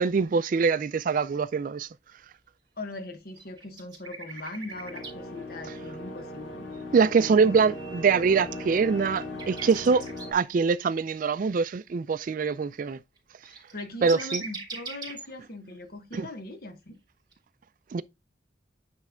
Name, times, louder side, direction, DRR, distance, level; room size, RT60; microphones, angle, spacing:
voice 1, 0.0-1.9 6.9-10.0 10.3-13.0 14.0-14.4 16.2-16.3 17.9-18.0, right 5 dB, 45° right, 0.3 m, -24 dB
voice 2, 2.8-6.6 13.7-16.9, left 2 dB, 50° left, 1.1 m, -40 dB
sound 1, 3.4-5.1 7.2-10.3 13.2-13.3 13.4-15.2 17.3-17.4, right 4 dB, 20° right, 3.0 m, -41 dB
sound 2, 4.5-10.3, left 1 dB, 85° left, 2.1 m, -39 dB
9.5 x 3.3 x 3.7 m
head